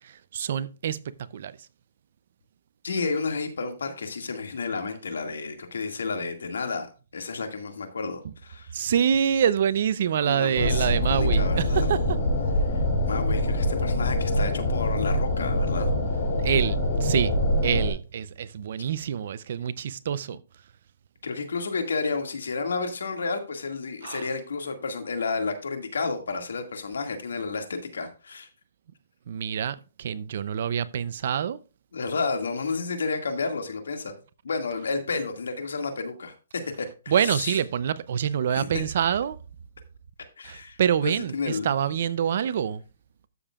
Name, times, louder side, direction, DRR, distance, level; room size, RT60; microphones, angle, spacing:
voice 1, 0.3-1.0 1.3-1.5 8.7-12.0 16.4-17.3 17.6-20.4 24.0-24.2 29.3-31.6 37.1-39.4 40.5-41.3 41.6-42.8, right 8 dB, 50° right, 0.6 m, -26 dB
voice 2, 2.8-6.9 7.1-8.7 10.2-11.9 12.6-16.2 21.2-28.5 31.9-34.2 34.4-36.3 36.8-37.6 38.5-38.9 40.4-41.8, left 4 dB, 80° left, 2.0 m, -31 dB
sound 1, 10.6-17.9, left 1 dB, 40° left, 2.9 m, -24 dB
13.0 x 6.9 x 2.4 m
hypercardioid pair, 160°, 0 cm